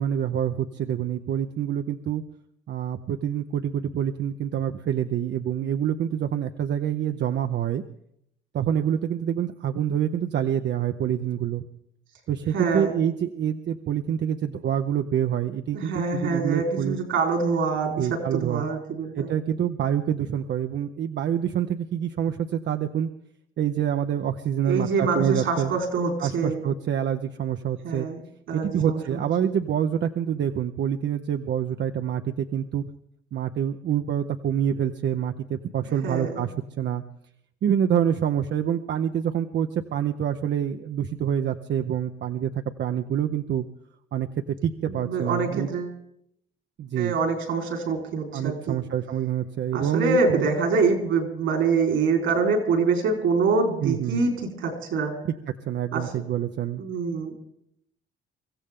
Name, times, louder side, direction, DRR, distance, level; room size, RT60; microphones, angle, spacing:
voice 1, 0.0-2.2 2.7-7.8 8.5-11.6 12.3-17.0 18.0-18.7 19.1-23.1 23.6-25.7 26.2-28.1 28.5-32.8 33.3-37.0 37.6-43.6 44.1-44.3 44.6-45.7 46.8-47.2 48.3-50.5 53.8-54.3 55.2-55.3 55.7-56.8, right 9 dB, 65° right, 7 dB, 0.8 m, -26 dB
voice 2, 12.5-13.0 15.7-19.3 24.6-26.6 27.8-28.2 28.5-29.5 36.0-36.4 44.9-45.9 47.0-48.8 49.7-55.1 55.9-56.0 56.8-57.3, right 4 dB, 80° right, 2 dB, 4.3 m, -25 dB
24.0 x 15.0 x 3.7 m, 0.73 s
cardioid pair, 90°, 20 cm